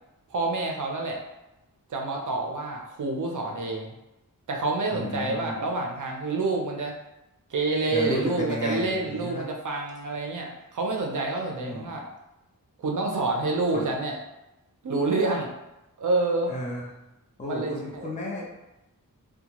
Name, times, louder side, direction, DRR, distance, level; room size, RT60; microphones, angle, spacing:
voice 1, 0.3-1.2 1.9-3.9 4.5-6.9 7.5-12.1 12.8-14.1 14.8-15.5 16.0-16.5 17.4-18.0, right 3 dB, 60° right, 1 dB, 0.6 m, -28 dB
voice 2, 4.9-5.6 7.9-9.4 11.6-11.9 13.7-13.9 16.5-16.9 17.4-18.5, left 1 dB, 20° left, -4 dB, 0.7 m, -32 dB
2.7 x 2.2 x 2.9 m, 0.95 s
wide cardioid pair, 115°, 35 cm